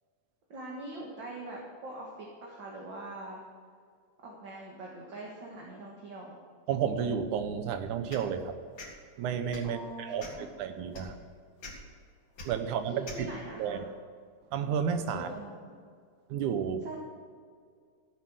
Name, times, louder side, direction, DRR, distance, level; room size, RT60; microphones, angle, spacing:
voice 1, 0.5-3.4 4.2-6.4 9.6-10.5 12.6-13.9 15.1-15.8 16.8-17.0, right 2 dB, 45° right, -2 dB, 2.0 m, -43 dB
voice 2, 6.7-8.6 9.2-10.3 10.6-11.2 12.4-13.3 13.6-13.8 14.5-15.3 16.3-16.8, right 7 dB, 80° right, 9 dB, 2.3 m, -31 dB
sound 1, 8.1-8.3 8.8-8.9 9.5-9.7 10.2-10.5 10.9-11.1 11.6-11.7 12.4-12.5 13.0-13.2, left 3 dB, 40° left, 2.8 m, -43 dB
15.0 x 7.6 x 6.3 m, 2.1 s
omnidirectional pair, 3.6 m